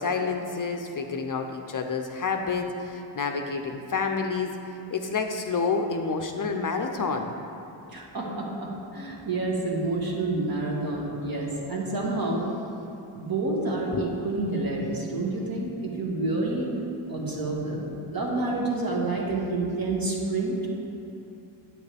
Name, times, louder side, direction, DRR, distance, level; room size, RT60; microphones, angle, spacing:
voice 1, 0.0-4.5 4.9-7.3 13.9-14.1, left 4 dB, 45° left, 4 dB, 0.6 m, -29 dB
voice 2, 7.9-12.4 13.1-16.7 17.1-20.7, right 2 dB, 45° right, -3 dB, 1.8 m, -28 dB
9.6 x 8.6 x 3.4 m, 2.9 s
wide cardioid pair, 110°, 47 cm